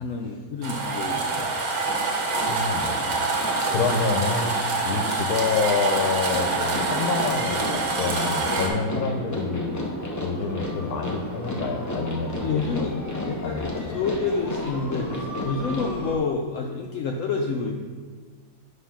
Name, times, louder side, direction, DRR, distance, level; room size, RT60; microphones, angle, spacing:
voice 1, 0.0-1.6 12.4-17.8, left 4 dB, 65° left, 1 dB, 0.9 m, -29 dB
sound 1, 0.6-8.7, right 3 dB, 85° right, 1.6 m, -26 dB
sound 2, 1.8-16.2, left 1 dB, 20° left, 0.6 m, -33 dB
voice 2, 2.4-9.9 10.2-13.0 13.4-14.0, left 4 dB, 90° left, 4 dB, 1.2 m, -28 dB
9.4 x 3.3 x 5.7 m, 1.5 s
omnidirectional pair, 1.5 m